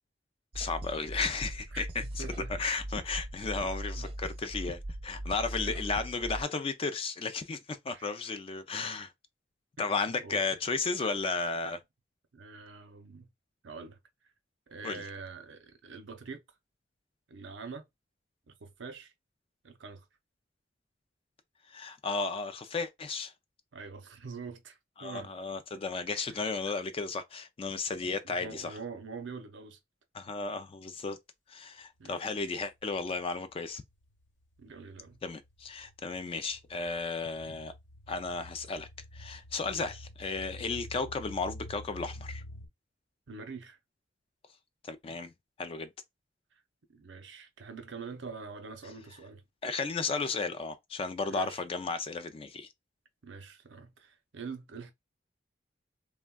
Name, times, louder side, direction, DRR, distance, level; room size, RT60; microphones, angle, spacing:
voice 1, 0.5-9.1 9.8-11.8 14.8-15.0 21.7-23.3 25.0-28.8 30.1-31.2 31.5-33.8 35.2-37.7 38.1-38.9 39.1-42.4 44.8-45.3 45.6-45.9 49.6-52.7, left 4 dB, 30° left, 0.3 m, -34 dB
sound 1, 0.5-6.4, right 1 dB, 30° right, 0.5 m, -39 dB
voice 2, 2.2-2.5 3.6-4.1 5.5-5.8 7.9-8.1 9.8-10.5 12.3-13.3 13.6-14.0 14.7-16.4 17.3-17.9 18.5-19.1 19.6-20.0 23.7-25.3 26.3-26.5 28.2-29.8 32.0-32.2 34.6-35.2 39.6-39.9 43.3-43.8 46.9-49.4 51.3-51.6 53.2-54.9, right 4 dB, 75° right, 0.6 m, -45 dB
sound 2, 32.3-33.1 33.3-42.7, left 1 dB, 85° left, 1.1 m, -48 dB
3.3 x 2.2 x 2.2 m
head